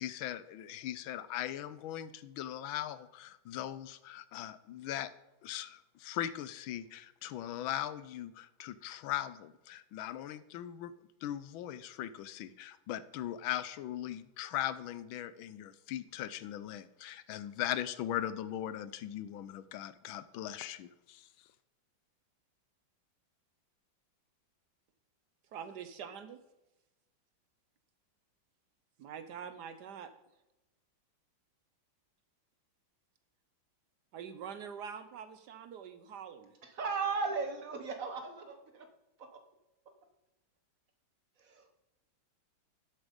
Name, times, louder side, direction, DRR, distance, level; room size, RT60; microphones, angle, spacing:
voice 1, 0.0-5.1 5.4-10.9 11.2-21.3, left 12 dB, 85° left, 14 dB, 1.5 m, -39 dB
voice 2, 25.5-26.4 29.0-30.1 34.1-36.6, right 7 dB, 65° right, 11 dB, 1.2 m, -45 dB
voice 3, 36.8-38.6 41.5-41.7, right 4 dB, 50° right, 6 dB, 1.3 m, -35 dB
11.0 x 7.8 x 5.2 m, 0.96 s
omnidirectional pair, 2.1 m